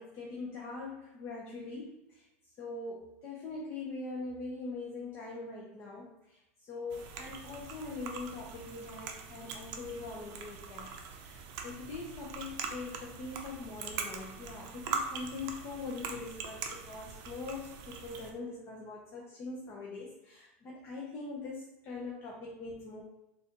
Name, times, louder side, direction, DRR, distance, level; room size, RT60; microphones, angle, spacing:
voice 1, 0.0-2.2 2.6-10.9 11.2-23.0, left 3 dB, 35° left, -3 dB, 0.7 m, -42 dB
sound 1, 6.9-18.3, right 5 dB, 50° right, 0.6 m, -42 dB
4.0 x 2.5 x 2.9 m, 0.94 s
supercardioid pair, 130°, 7 cm